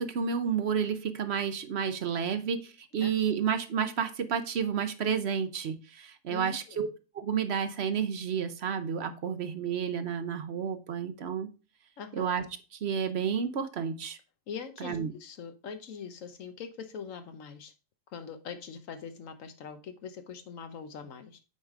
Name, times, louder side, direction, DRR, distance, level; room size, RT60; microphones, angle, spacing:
voice 1, 0.0-6.9 7.1-11.5 12.1-12.4 12.8-14.2 14.8-15.1, right 7 dB, 60° right, 10 dB, 0.9 m, -31 dB
voice 2, 6.3-6.9 12.0-12.3 14.5-17.7 18.1-21.4, left 6 dB, 80° left, 8 dB, 1.2 m, -42 dB
8.0 x 4.8 x 3.7 m, 0.33 s
omnidirectional pair, 1.3 m